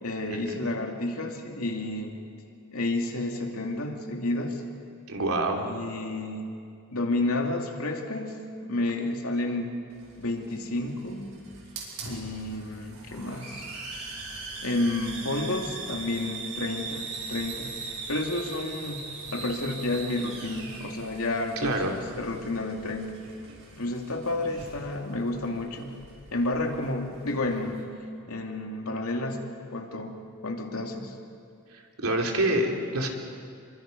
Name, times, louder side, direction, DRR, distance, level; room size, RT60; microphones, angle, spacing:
voice 1, 0.0-2.1 2.7-4.6 5.5-6.5 6.9-9.8 10.2-11.4 12.0-13.7 14.6-17.7 18.1-19.0 19.3-23.2 23.7-25.9 26.3-27.9 28.3-29.4 29.7-31.2, left 2 dB, 85° left, 2 dB, 2.6 m, -31 dB
voice 2, 5.1-5.7 21.6-21.9 32.0-33.1, right 1 dB, 85° right, 1 dB, 3.0 m, -26 dB
Hiss, 9.9-27.8, right 4 dB, 65° right, 5.4 m, -41 dB
28.5 x 23.5 x 5.3 m, 2.4 s
head